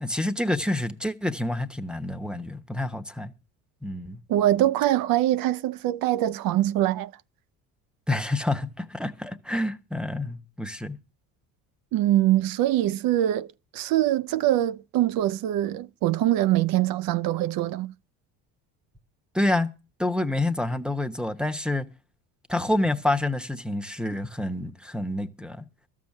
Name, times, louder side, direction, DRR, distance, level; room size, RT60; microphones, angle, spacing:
voice 1, 0.0-3.3 3.8-4.2 8.1-11.0 19.3-19.7 20.0-21.9 22.5-25.6, left 1 dB, ahead, 0.9 m, -28 dB
voice 2, 4.3-7.1 11.9-13.5 13.7-17.9, right 13 dB, 60° right, 0.6 m, -23 dB
13.0 x 7.3 x 6.5 m
supercardioid pair, 95°, 41 cm